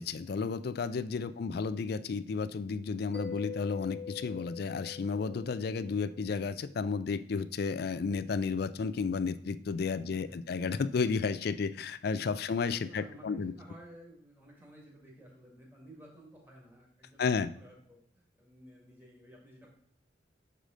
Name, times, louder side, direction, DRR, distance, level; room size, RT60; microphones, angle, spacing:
voice 1, 0.0-13.5 17.2-17.5, left 5 dB, 55° left, 13 dB, 0.4 m, -32 dB
voice 2, 1.1-1.5 10.1-10.4 12.1-12.3 12.7-19.7, right 1 dB, 10° right, -3 dB, 1.9 m, -54 dB
Mallet percussion, 3.1-6.6, left 6 dB, 10° left, 0.7 m, -44 dB
6.7 x 4.9 x 3.8 m, 0.67 s
head